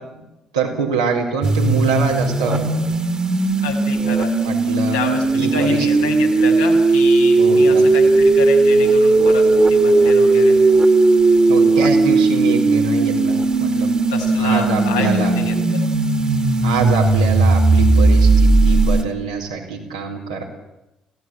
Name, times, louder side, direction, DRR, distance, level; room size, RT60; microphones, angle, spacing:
voice 1, 0.5-2.8 4.4-5.0 5.3-5.9 6.2-6.3 7.4-8.1 11.5-13.9 14.3-15.3 16.6-20.4, right 4 dB, 85° right, -1 dB, 4.4 m, -24 dB
sound 1, 1.4-19.0, right 3 dB, 25° right, 2.5 m, -16 dB
voice 2, 3.6-4.3 4.9-10.6 14.1-15.5, left 5 dB, 85° left, -2 dB, 4.9 m, -28 dB
24.0 x 17.0 x 8.9 m, 0.97 s
figure-of-eight pair, 50°, 3 cm